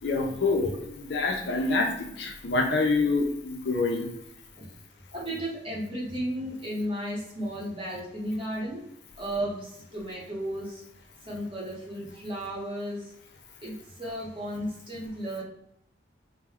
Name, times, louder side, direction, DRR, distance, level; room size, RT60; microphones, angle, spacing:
voice 1, 0.0-4.1, left 3 dB, 65° left, 2 dB, 0.5 m, -26 dB
voice 2, 5.1-8.8 9.2-10.8 11.2-13.1 13.6-15.4, equal, 25° right, -5 dB, 0.9 m, -34 dB
2.2 x 2.1 x 3.5 m, 0.78 s
head